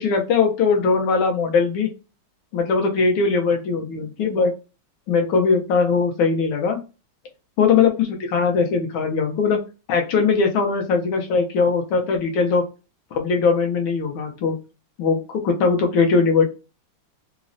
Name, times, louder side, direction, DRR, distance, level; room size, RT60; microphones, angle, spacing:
voice 1, 0.0-1.9 2.5-4.5 5.1-6.8 7.6-9.6 9.9-12.6 13.1-14.6 15.0-16.5, left 5 dB, 80° left, 3 dB, 1.5 m, -20 dB
3.8 x 2.0 x 2.5 m, 0.31 s
omnidirectional pair, 2.2 m